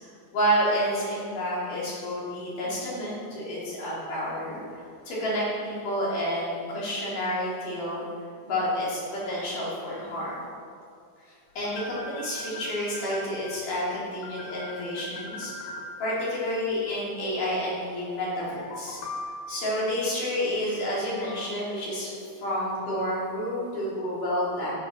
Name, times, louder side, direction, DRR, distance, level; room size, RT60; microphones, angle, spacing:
voice 1, 0.3-4.6 5.1-8.0 8.4-10.5 11.5-19.0 19.5-22.1 22.4-24.7, equal, 85° left, -7 dB, 5.0 m, -29 dB
sound 1, 11.6-13.8 14.2-16.6 18.4-19.8 21.2-21.5, left 2 dB, 70° left, 2.1 m, -40 dB
13.0 x 7.6 x 5.7 m, 2.4 s
omnidirectional pair, 3.6 m